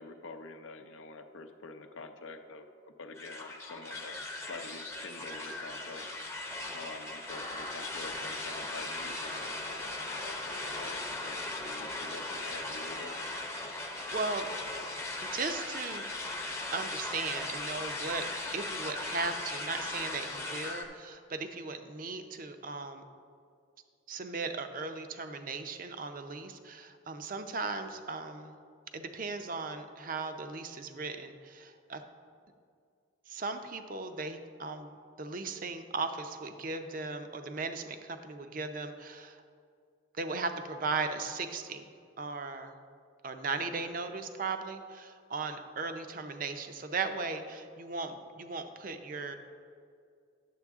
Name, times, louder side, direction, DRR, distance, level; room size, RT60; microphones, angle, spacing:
voice 1, 0.0-6.1 6.7-13.2, left 3 dB, 80° left, 6 dB, 0.6 m, -47 dB
sound 1, 3.1-20.8, left 2 dB, 15° left, 0.7 m, -38 dB
voice 2, 14.1-14.5 15.2-16.1 16.7-18.3 18.5-23.0 24.1-28.6 28.9-32.0 33.3-39.4 40.2-41.8 42.2-42.7 43.2-49.4, right 4 dB, 40° right, 7 dB, 0.5 m, -37 dB
10.0 x 7.5 x 3.6 m, 2.3 s
head